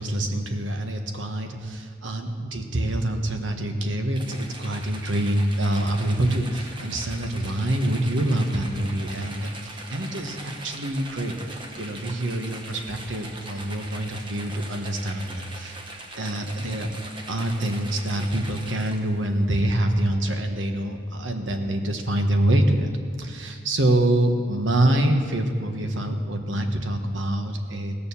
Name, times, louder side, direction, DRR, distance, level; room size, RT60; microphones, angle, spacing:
voice 1, 0.0-15.8 16.1-16.9 17.3-22.9 23.2-28.0, right 1 dB, 65° right, 5 dB, 1.2 m, -25 dB
sound 1, 4.1-19.3, right 2 dB, 25° right, 1.1 m, -41 dB
16.5 x 7.0 x 7.0 m, 2.1 s
head